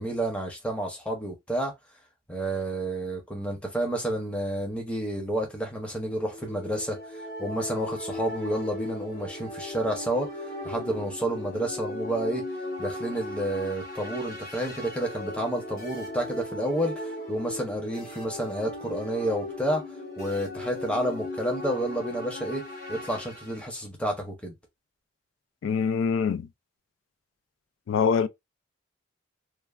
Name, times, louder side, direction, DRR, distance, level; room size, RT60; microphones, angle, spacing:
voice 1, 0.0-1.7 2.3-7.0 7.4-10.3 10.6-12.4 12.8-19.8 20.2-22.6 22.9-24.5, right 1 dB, 5° left, 0.7 m, -30 dB
sound 1, 6.3-23.6, left 1 dB, 50° left, 0.9 m, -37 dB
voice 2, 25.6-26.5 27.9-28.3, left 6 dB, 85° left, 0.3 m, -24 dB
3.2 x 2.0 x 2.3 m
head